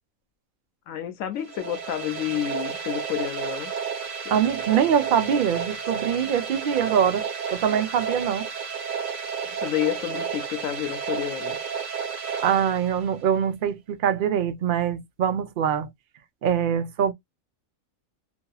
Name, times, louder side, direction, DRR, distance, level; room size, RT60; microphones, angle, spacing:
voice 1, 0.9-3.7 4.3-4.4 9.5-11.6, left 11 dB, 75° left, 1.0 m, -30 dB
sound 1, 1.4-13.3, right 6 dB, 75° right, 1.5 m, -32 dB
voice 2, 4.3-7.2 7.5-8.5 12.4-15.9 16.4-17.1, right 8 dB, 55° right, 0.6 m, -23 dB
2.9 x 2.6 x 2.3 m
omnidirectional pair, 1.4 m